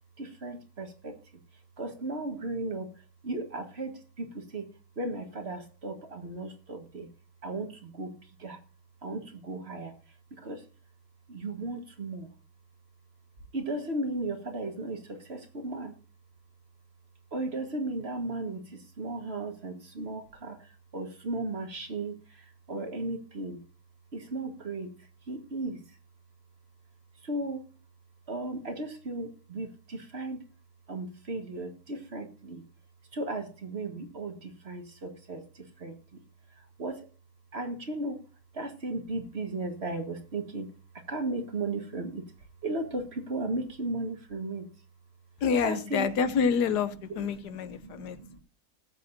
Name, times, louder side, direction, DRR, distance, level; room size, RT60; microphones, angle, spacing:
voice 1, 0.2-1.2 1.8-4.7 4.9-7.1 7.4-8.6 9.0-10.7 11.3-12.3 13.5-16.0 17.3-23.6 24.1-26.0 27.2-27.7 28.3-30.5 30.9-32.7 33.1-36.2 36.5-37.1 37.5-42.3 42.6-44.7 45.6-46.1 47.1-48.4, right 2 dB, 40° right, 1.7 m, -36 dB
voice 2, 45.4-48.2, left 6 dB, 80° left, 1.4 m, -27 dB
19.5 x 7.8 x 2.6 m
omnidirectional pair, 1.8 m